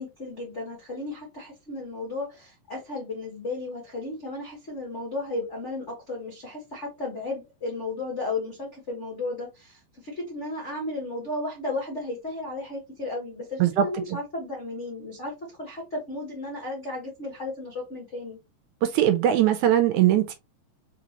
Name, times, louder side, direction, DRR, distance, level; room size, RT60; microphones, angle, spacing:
voice 1, 0.0-18.4, left 2 dB, 85° left, 0.6 m, -34 dB
voice 2, 18.9-20.3, right 11 dB, 80° right, 1.8 m, -20 dB
4.3 x 4.0 x 2.9 m
omnidirectional pair, 3.8 m